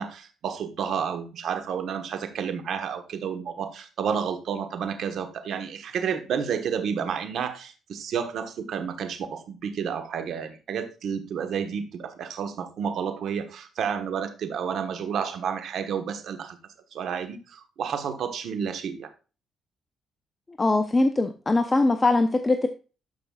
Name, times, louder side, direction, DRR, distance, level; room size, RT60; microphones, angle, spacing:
voice 1, 0.0-16.6 16.9-19.1, right 7 dB, 70° right, 8 dB, 1.2 m, -30 dB
voice 2, 20.6-22.7, left 2 dB, 25° left, 6 dB, 0.7 m, -21 dB
12.5 x 5.4 x 2.4 m, 0.33 s
cardioid pair, 90°, 0 cm